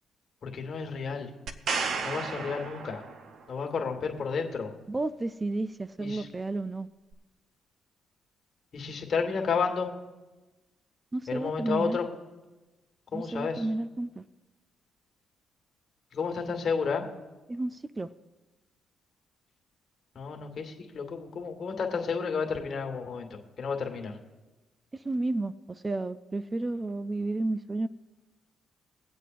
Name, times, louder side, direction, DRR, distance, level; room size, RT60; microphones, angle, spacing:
voice 1, 0.4-1.3 2.0-3.0 3.5-4.7 6.0-6.3 8.7-9.9 11.3-12.0 13.1-13.7 16.1-17.0 20.1-24.2, left 5 dB, 55° left, 2 dB, 1.5 m, -31 dB
sound 1, 1.5-3.4 7.1-7.2, right 5 dB, 65° right, 0.7 m, -33 dB
voice 2, 4.9-6.9 11.1-12.0 13.1-14.2 17.5-18.1 24.9-27.9, right 2 dB, 20° right, 13 dB, 0.3 m, -32 dB
22.5 x 8.1 x 2.5 m, 1.2 s
cardioid pair, 90°, 0 cm